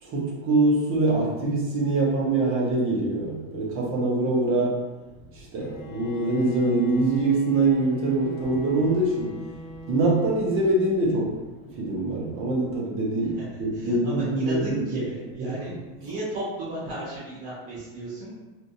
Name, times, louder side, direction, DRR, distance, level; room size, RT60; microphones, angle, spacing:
voice 1, 0.0-4.8 5.3-9.4 9.9-11.4 11.8-15.0, right 2 dB, 45° right, -4 dB, 1.2 m, -24 dB
Bowed string instrument, 5.6-10.9, left 2 dB, 85° left, 0.7 m, -44 dB
voice 2, 13.2-15.7 16.0-18.4, right 1 dB, 70° right, -9 dB, 1.5 m, -35 dB
3.5 x 2.7 x 2.7 m, 1.2 s
supercardioid pair, 135°, 31 cm